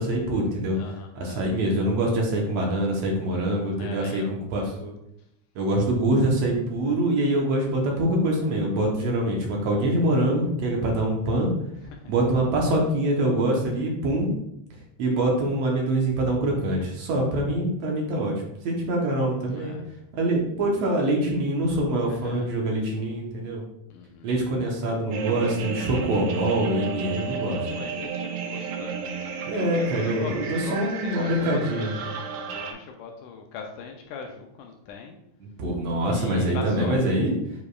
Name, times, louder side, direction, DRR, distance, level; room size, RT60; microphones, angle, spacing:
voice 1, 0.0-0.8 1.2-4.2 4.5-4.9 5.6-11.5 12.1-14.3 15.0-18.3 18.6-19.8 20.1-23.6 24.2-27.6 29.5-31.9 35.6-37.3, right 1 dB, 65° right, 0 dB, 1.9 m, -24 dB
voice 2, 0.7-1.4 3.8-4.8 11.8-12.2 19.5-19.8 21.6-21.8 22.1-22.5 23.9-24.3 27.7-35.2 35.9-37.0, left 5 dB, 80° left, 2 dB, 2.2 m, -40 dB
sound 1, 25.1-32.7, right 6 dB, 80° right, 2.0 m, -33 dB
8.1 x 4.9 x 2.4 m, 0.80 s
omnidirectional pair, 3.8 m